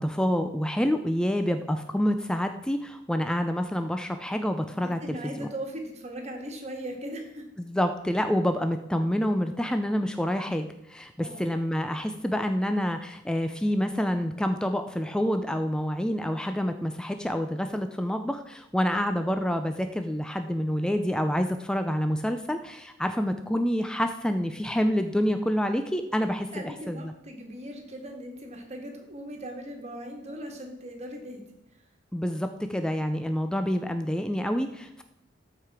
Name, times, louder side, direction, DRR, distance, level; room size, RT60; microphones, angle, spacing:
voice 1, 0.0-5.5 7.6-27.1 32.1-35.0, equal, 5° left, 7 dB, 0.4 m, -27 dB
voice 2, 4.8-7.5 11.2-11.5 26.5-31.4, right 1 dB, 35° right, 2 dB, 1.8 m, -39 dB
13.5 x 4.9 x 4.7 m, 0.84 s
head